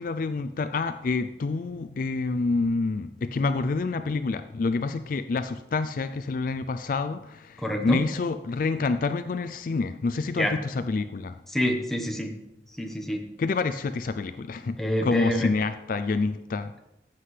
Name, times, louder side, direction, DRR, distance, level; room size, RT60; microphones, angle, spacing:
voice 1, 0.0-11.4 13.4-14.8 15.0-16.7, left 3 dB, 50° left, 11 dB, 0.3 m, -27 dB
voice 2, 7.6-8.0 10.4-10.6 11.5-12.3 12.8-13.2 14.8-15.5, equal, ahead, 2 dB, 1.1 m, -27 dB
15.0 x 7.7 x 3.3 m, 0.91 s
head